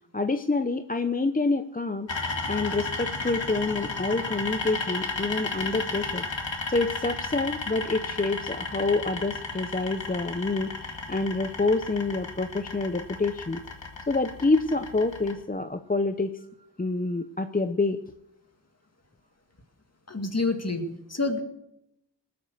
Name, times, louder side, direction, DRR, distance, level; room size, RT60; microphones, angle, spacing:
voice 1, 0.1-2.1 2.5-6.3 6.7-13.6 14.1-16.5 16.8-18.0, left 3 dB, 20° left, 9 dB, 0.6 m, -27 dB
sound 1, 2.1-15.3, left 3 dB, 85° left, 2.2 m, -34 dB
voice 2, 20.1-21.4, left 3 dB, 35° left, 6 dB, 2.1 m, -28 dB
20.0 x 8.8 x 6.5 m, 0.82 s
wide cardioid pair, 70°, 43 cm